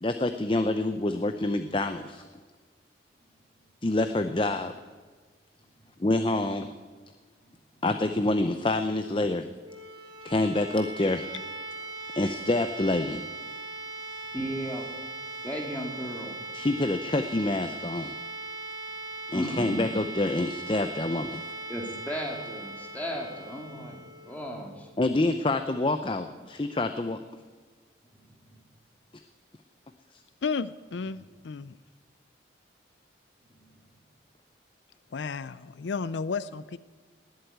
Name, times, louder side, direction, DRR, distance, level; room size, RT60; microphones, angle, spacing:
voice 1, 0.0-2.2 3.8-4.7 6.0-6.7 7.8-9.5 10.2-11.3 12.2-13.2 16.5-18.2 19.3-21.5 25.0-27.2, left 2 dB, 25° left, 8 dB, 0.6 m, -27 dB
sound 1, 9.6-25.3, right 2 dB, 25° right, 2.9 m, -40 dB
voice 2, 14.3-14.9 15.4-16.4 19.3-19.9 21.7-24.9 33.5-33.6, equal, 10° left, 0 dB, 2.3 m, -35 dB
voice 3, 30.4-31.8 35.1-36.8, left 5 dB, 75° left, 15 dB, 0.5 m, -33 dB
19.0 x 8.0 x 9.2 m, 1.4 s
head